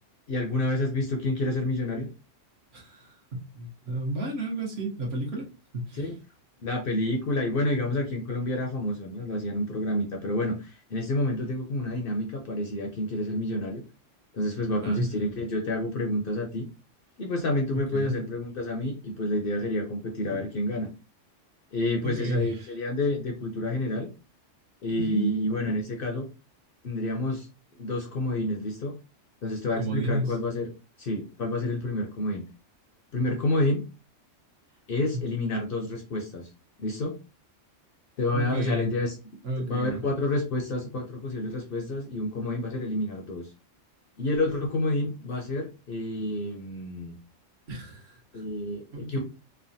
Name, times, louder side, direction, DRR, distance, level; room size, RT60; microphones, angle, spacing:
voice 1, 0.3-2.1 6.0-6.2 6.6-13.8 14.3-16.6 17.2-20.9 21.7-24.1 24.8-26.3 26.8-27.5 27.8-28.9 29.4-30.7 31.0-32.4 33.1-33.8 34.9-36.5 36.8-37.2 38.2-39.2 39.6-43.5 44.2-47.2 48.3-49.2, left 1 dB, 60° left, 2 dB, 0.7 m, -29 dB
voice 2, 2.7-6.1 14.8-15.1 17.7-18.2 22.0-22.7 24.9-25.5 29.8-30.4 35.1-35.2 38.3-38.9 39.4-40.0 47.7-48.4 48.9-49.2, right 2 dB, 60° right, -1 dB, 1.0 m, -32 dB
3.3 x 2.1 x 2.6 m, 0.31 s
omnidirectional pair, 1.3 m